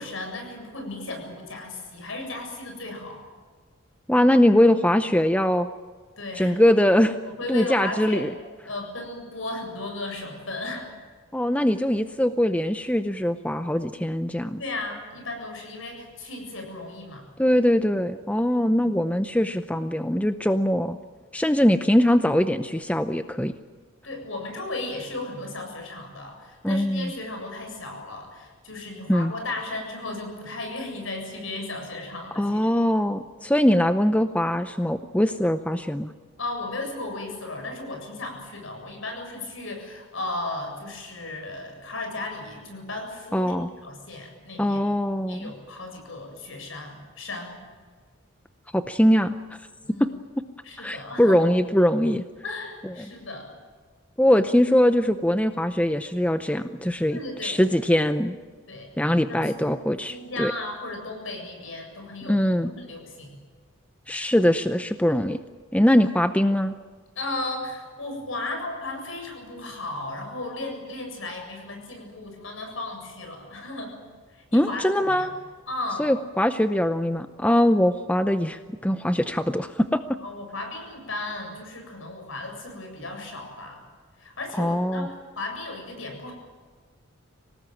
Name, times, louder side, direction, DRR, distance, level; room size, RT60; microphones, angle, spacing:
voice 1, 0.0-3.2 6.2-6.5 7.3-8.3 8.7-10.9 14.6-17.3 24.0-32.7 36.4-44.8 45.3-47.6 49.8-50.1 50.6-51.5 52.4-53.5 57.1-57.6 58.7-58.9 59.3-59.7 60.0-63.4 67.2-73.9 74.3-75.3 75.7-76.0 80.2-83.8 84.2-86.3, left 2 dB, 70° left, 3 dB, 7.5 m, -35 dB
voice 2, 4.1-5.7 6.4-7.2 7.5-8.3 11.3-14.6 17.4-21.0 21.3-23.5 26.6-27.1 29.1-29.3 32.4-36.1 43.3-43.7 44.6-45.5 48.7-49.4 50.0-50.1 50.8-52.2 52.8-53.1 54.2-58.4 59.0-60.5 62.2-62.7 64.1-65.4 65.7-66.8 74.5-75.3 76.0-80.0 84.6-85.1, equal, 5° left, 10 dB, 0.6 m, -22 dB
25.5 x 18.5 x 9.1 m, 1.5 s
head